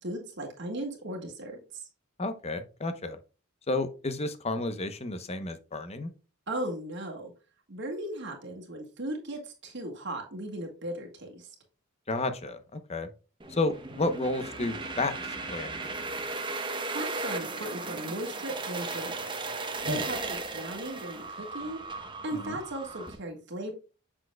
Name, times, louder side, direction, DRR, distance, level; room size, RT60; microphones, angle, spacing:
voice 1, 0.0-1.9 6.5-7.3 7.7-11.5 16.9-19.3 19.9-21.8 22.2-23.7, right 1 dB, 55° right, 1 dB, 1.6 m, -37 dB
voice 2, 2.2-3.2 3.7-6.1 12.1-13.1 13.5-15.1 15.5-15.8 19.8-20.0 22.3-22.6, left 2 dB, 30° left, 9 dB, 0.8 m, -31 dB
sound 1, 13.4-23.1, right 3 dB, 25° right, 0.9 m, -36 dB
7.3 x 6.1 x 2.3 m, 0.33 s
head